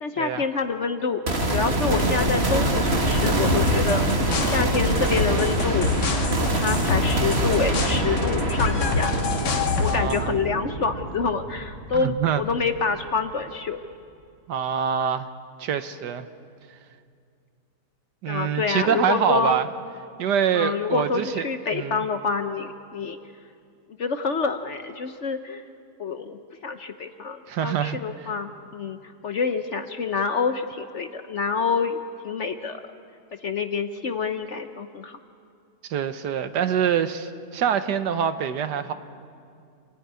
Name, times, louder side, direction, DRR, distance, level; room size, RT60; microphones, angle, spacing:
voice 1, 0.0-5.9 6.5-9.2 9.8-13.8 18.3-19.6 20.5-23.2 24.0-25.6 26.0-29.0 29.2-32.8 33.4-35.2, left 5 dB, 50° left, 8 dB, 0.9 m, -27 dB
sound 1, 1.3-12.6, right 1 dB, 35° right, 2.1 m, -25 dB
sound 2, 3.5-10.2, left 5 dB, 80° left, 2.1 m, -27 dB
voice 2, 9.8-10.4 11.9-12.4 14.5-15.3 15.6-16.3 16.7-16.8 18.2-19.7 20.2-21.4 21.7-22.0 27.5-28.3 35.9-38.9, right 8 dB, 75° right, 10 dB, 1.5 m, -25 dB
26.5 x 15.5 x 9.6 m, 2.3 s
omnidirectional pair, 1.9 m